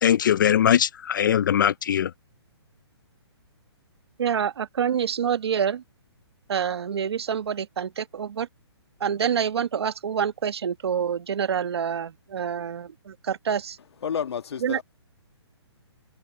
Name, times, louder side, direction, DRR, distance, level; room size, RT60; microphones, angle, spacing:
voice 1, 0.0-2.1, left 9 dB, 45° left, 0.5 m, -21 dB
voice 2, 4.2-5.8 6.5-8.5 9.0-13.8 14.6-14.8, right 7 dB, 65° right, 1.3 m, -27 dB
voice 3, 14.0-14.8, left 7 dB, 65° left, 1.8 m, -30 dB
hypercardioid pair, 165°, 14 cm